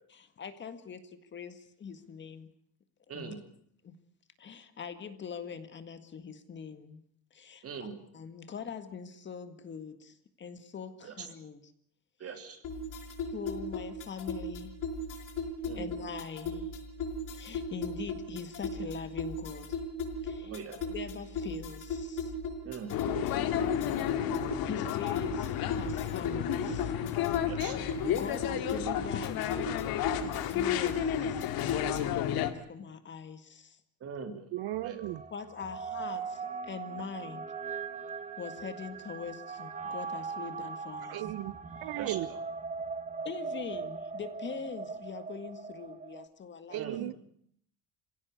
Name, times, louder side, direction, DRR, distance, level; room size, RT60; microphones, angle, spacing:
voice 1, 0.1-2.5 3.1-3.3 3.8-4.0 4.4-7.0 7.3-7.6 8.1-11.6 12.3-12.4 13.3-14.7 15.7-16.7 17.3-19.7 20.2-20.5 20.9-22.3 24.6-26.9 28.1-29.4 30.2-31.4 32.1-33.8 35.3-37.5 38.4-41.2 43.2-46.9, left 6 dB, 30° left, 10 dB, 1.9 m, -43 dB
voice 2, 3.1-3.5 7.6-8.0 11.0-11.3 12.2-12.6 15.7-15.9 20.4-20.8 22.6-23.0 27.4-28.0 34.0-34.5 34.8-35.0 41.9-42.2 46.7-47.1, right 6 dB, 40° right, 7 dB, 3.3 m, -41 dB
sound 1, 12.6-32.2, left 2 dB, 60° left, 5.2 m, -37 dB
sound 2, 22.9-32.5, left 11 dB, 80° left, 2.2 m, -31 dB
voice 3, 34.5-35.2 41.0-42.3 46.7-47.1, right 16 dB, 85° right, 18 dB, 0.9 m, -36 dB
sound 3, 34.6-46.3, right 5 dB, 20° right, 1.4 m, -40 dB
26.5 x 17.0 x 8.2 m, 0.67 s
cardioid pair, 165°, 35 cm